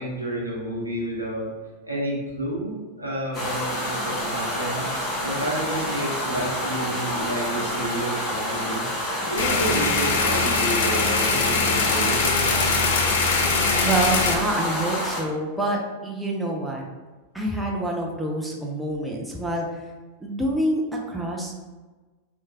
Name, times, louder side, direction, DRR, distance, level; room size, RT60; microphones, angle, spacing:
voice 1, 0.0-1.5 1.8-4.9 5.2-8.9 9.2-12.6, right 1 dB, 85° right, -5 dB, 0.8 m, -30 dB
sound 1, 3.3-15.2, left 1 dB, 15° left, 1.0 m, -28 dB
sound 2, 9.4-14.4, left 4 dB, 55° left, 0.4 m, -22 dB
voice 2, 13.8-16.9 17.3-19.8 20.2-21.6, right 1 dB, 5° right, -1 dB, 0.4 m, -27 dB
3.0 x 2.2 x 2.7 m, 1.3 s
figure-of-eight pair, 90°, 0 cm